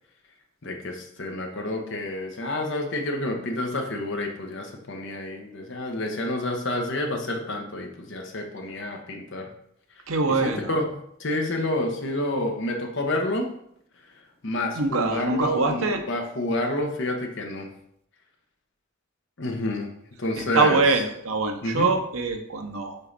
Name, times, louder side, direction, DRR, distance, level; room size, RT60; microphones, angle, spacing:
voice 1, 0.6-9.5 10.3-10.8 11.2-13.5 14.4-17.7 19.4-19.9 20.2-20.8 21.6-21.9, left 1 dB, 60° left, 2 dB, 1.0 m, -29 dB
voice 2, 10.1-10.7 14.8-16.0 20.4-23.0, right 3 dB, 80° right, 5 dB, 0.8 m, -24 dB
5.5 x 4.5 x 4.0 m, 0.70 s
head